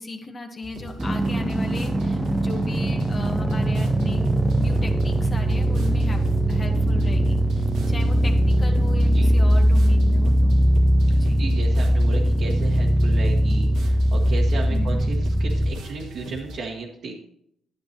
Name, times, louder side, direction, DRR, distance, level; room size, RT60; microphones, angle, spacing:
voice 1, 0.0-4.3 4.6-10.6 11.2-11.4 14.6-15.0, left 3 dB, 35° left, 3 dB, 1.3 m, -36 dB
sound 1, 0.6-16.6, right 2 dB, 85° right, 1.6 m, -38 dB
sound 2, 1.0-15.7, right 1 dB, 15° right, 0.8 m, -20 dB
voice 2, 11.4-17.1, right 4 dB, 70° right, -3 dB, 1.5 m, -34 dB
10.5 x 10.0 x 2.9 m, 0.72 s
cardioid pair, 90°, 0 cm